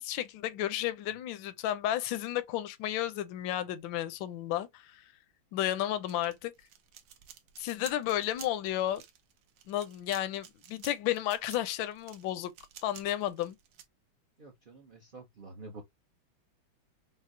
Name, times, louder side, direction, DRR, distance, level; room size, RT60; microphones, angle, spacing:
voice 1, 0.0-5.0 5.5-6.5 7.6-9.0 9.7-12.5 12.8-13.6, left 12 dB, 80° left, 1.3 m, -32 dB
sound 1, 6.1-13.8, right 10 dB, 80° right, 1.5 m, -51 dB
voice 2, 14.4-15.8, right 3 dB, 65° right, 0.5 m, -48 dB
5.4 x 2.0 x 2.6 m
omnidirectional pair, 2.1 m